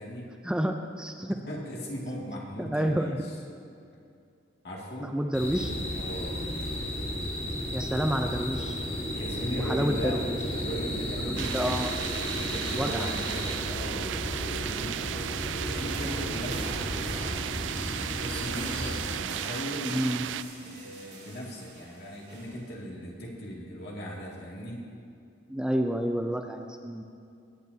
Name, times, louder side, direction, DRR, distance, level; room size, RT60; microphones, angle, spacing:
voice 1, 0.4-1.4 2.6-3.2 5.0-5.7 7.7-8.8 9.6-10.2 11.2-11.9 12.8-13.1 19.8-20.3 25.5-27.0, equal, 5° right, 4 dB, 0.4 m, -29 dB
voice 2, 1.3-3.3 4.6-5.2 5.9-6.4 9.1-10.2 10.5-11.8 12.4-14.1 14.5-14.9 15.5-17.2 18.0-20.0 20.5-24.8, equal, 60° left, -3 dB, 2.3 m, -38 dB
sound 1, 5.3-19.2, equal, 35° left, 2.5 m, -33 dB
sound 2, 11.4-20.4, right 11 dB, 80° right, 0.3 m, -35 dB
sound 3, 15.8-22.8, right 2 dB, 60° right, 3.2 m, -45 dB
19.5 x 9.1 x 2.8 m, 2.4 s
head